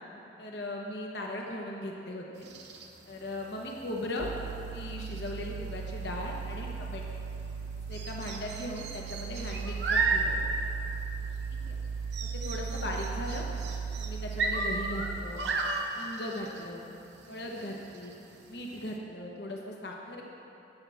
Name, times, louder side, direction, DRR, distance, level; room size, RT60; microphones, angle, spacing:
voice 1, 0.4-2.5 3.1-4.3 4.7-7.0 7.9-10.5 11.7-11.8 12.2-13.4 14.0-15.4 15.9-16.8 17.3-18.1 18.5-20.2, left 1 dB, 65° left, -1 dB, 1.1 m, -38 dB
sound 1, 2.4-19.0, right 3 dB, 70° right, 1.0 m, -36 dB
sound 2, 4.2-15.2, right 5 dB, 90° right, 0.4 m, -37 dB
17.0 x 7.3 x 3.5 m, 2.9 s
head